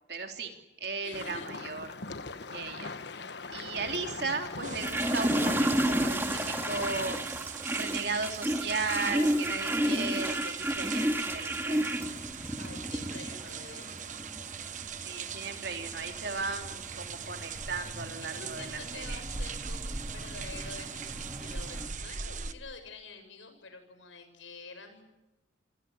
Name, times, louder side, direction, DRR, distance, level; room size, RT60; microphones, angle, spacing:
voice 1, 0.1-1.9 2.5-2.9 3.5-7.2 7.7-12.0 15.0-19.2, right 4 dB, 55° right, 4 dB, 3.7 m, -36 dB
voice 2, 1.0-1.5 12.6-14.3 18.2-25.0, left 4 dB, 90° left, 8 dB, 7.6 m, -47 dB
sound 1, 1.1-7.1, left 3 dB, 65° left, 1.3 m, -41 dB
sound 2, 4.6-22.5, right 6 dB, 40° right, 1.3 m, -40 dB
sound 3, 4.8-21.9, right 1 dB, 10° right, 2.2 m, -33 dB
28.0 x 21.5 x 9.9 m, 0.96 s
head